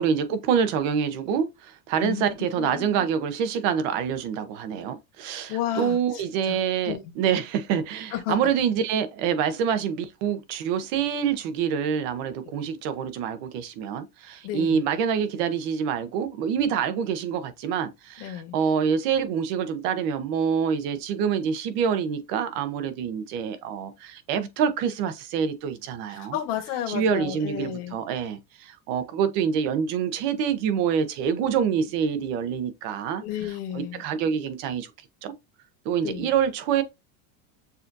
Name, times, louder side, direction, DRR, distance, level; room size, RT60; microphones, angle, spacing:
voice 1, 0.0-26.4 26.9-33.2 33.7-34.9 35.2-35.3 35.8-36.8, right 7 dB, 60° right, 1.0 m, -26 dB
voice 2, 2.0-3.1 5.2-6.6 6.8-7.0 8.1-8.4 14.4-14.8 18.2-18.5 26.1-27.9 33.2-34.0 36.0-36.3, left 11 dB, 60° left, 1.3 m, -32 dB
6.8 x 2.7 x 2.6 m
supercardioid pair, 155°, 44 cm